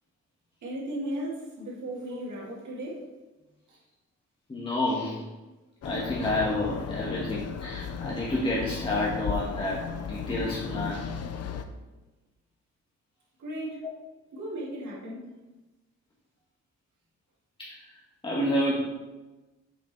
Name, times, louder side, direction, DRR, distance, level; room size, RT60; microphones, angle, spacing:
voice 1, 0.6-3.0 3.7-3.8 13.4-13.8 14.3-15.2, right 1 dB, 80° right, -5 dB, 2.8 m, -36 dB
voice 2, 4.5-5.2 5.8-11.0 13.8-13.9 17.6-18.8, left 1 dB, 15° left, -6 dB, 1.4 m, -29 dB
sound 1, 5.8-11.7, left 6 dB, 55° left, 0.7 m, -35 dB
7.2 x 6.3 x 4.5 m, 1.1 s
wide cardioid pair, 170°, 29 cm